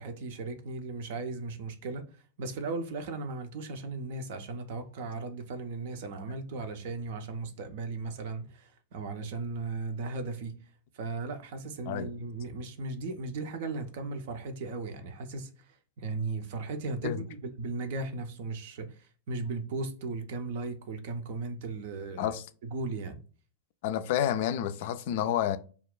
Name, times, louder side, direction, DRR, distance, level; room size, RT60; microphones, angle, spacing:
voice 1, 0.0-2.1 2.4-10.6 10.9-22.4 22.6-23.2, right 3 dB, 60° right, 0.5 m, -36 dB
voice 2, 23.8-25.6, left 10 dB, 55° left, 0.3 m, -29 dB
2.4 x 2.2 x 3.5 m
figure-of-eight pair, 95°, 0 cm